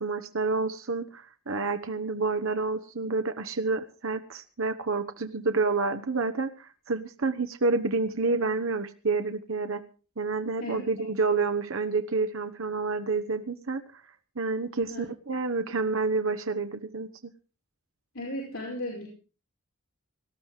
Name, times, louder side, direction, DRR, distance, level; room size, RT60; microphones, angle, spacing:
voice 1, 0.0-9.8 10.2-14.0 14.4-17.3, right 3 dB, 70° right, 8 dB, 1.0 m, -29 dB
voice 2, 10.6-11.1 14.9-15.0 18.1-19.1, left 1 dB, 75° left, -2 dB, 5.1 m, -36 dB
18.5 x 12.5 x 4.9 m, 0.37 s
head